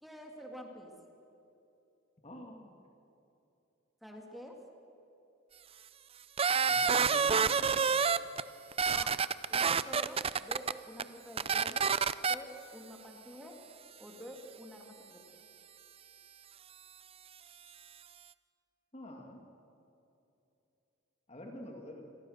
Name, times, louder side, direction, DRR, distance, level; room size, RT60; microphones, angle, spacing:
voice 1, 0.0-0.9 4.0-4.6 8.9-9.2 9.5-11.9 12.3-13.6 14.0-15.2, equal, ahead, 1 dB, 2.7 m, -48 dB
voice 2, 2.2-2.8 6.7-8.0 18.9-19.4 21.3-22.0, left 1 dB, 30° left, 2 dB, 2.2 m, -47 dB
sound 1, 6.4-8.4 8.7-10.7 11.0-11.1 11.4-12.3, right 6 dB, 30° right, 0.5 m, -28 dB
28.0 x 22.0 x 6.6 m, 2.8 s
head